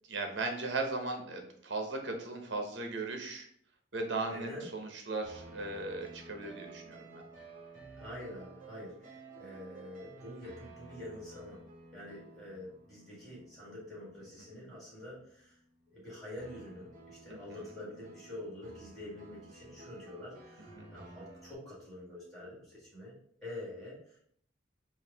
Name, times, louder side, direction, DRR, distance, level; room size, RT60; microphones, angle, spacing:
voice 1, 0.1-3.5 3.9-7.2 17.3-17.7 20.8-20.9, right 3 dB, 65° right, 4 dB, 0.8 m, -37 dB
voice 2, 4.3-4.6 7.9-11.6 11.9-15.6 15.9-24.3, left 1 dB, ahead, -7 dB, 1.8 m, -46 dB
sound 1, 5.2-15.5 15.8-21.5, right 2 dB, 45° right, 1.3 m, -53 dB
4.6 x 2.5 x 3.4 m, 0.64 s
head